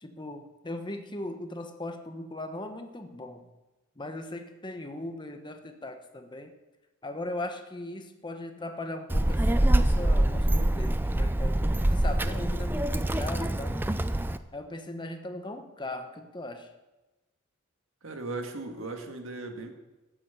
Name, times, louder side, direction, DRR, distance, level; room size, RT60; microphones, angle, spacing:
voice 1, 0.0-3.5 4.0-6.5 7.0-11.6 11.9-13.8 14.5-16.7, left 1 dB, 20° left, 6 dB, 1.1 m, -38 dB
Child speech kid speaking, 9.1-14.4, right 1 dB, 10° right, 0.4 m, -25 dB
voice 2, 18.0-19.7, right 2 dB, 65° right, 4 dB, 1.8 m, -37 dB
13.5 x 7.4 x 8.3 m, 1.1 s
head